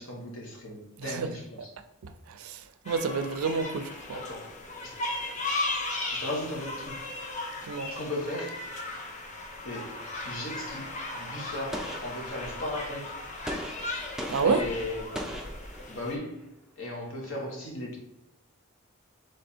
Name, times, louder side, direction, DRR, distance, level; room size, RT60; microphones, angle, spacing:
voice 1, 0.0-1.7 4.1-5.0 5.6-5.7 6.1-6.9 7.9-8.6 9.6-9.9 10.2-13.1 14.4-15.2 15.9-16.5 16.8-18.0, left 1 dB, 65° left, 1.2 m, -37 dB
voice 2, 2.0-2.6 2.9-4.2 7.7-7.9 14.3-14.6, right 4 dB, 80° right, 0.4 m, -29 dB
sound 1, 2.8-16.1, left 2 dB, 35° left, 0.6 m, -36 dB
Gunshot gunfire, 11.7-12.8 13.5-16.2, equal, ahead, 0.3 m, -39 dB
3.4 x 3.2 x 4.3 m
head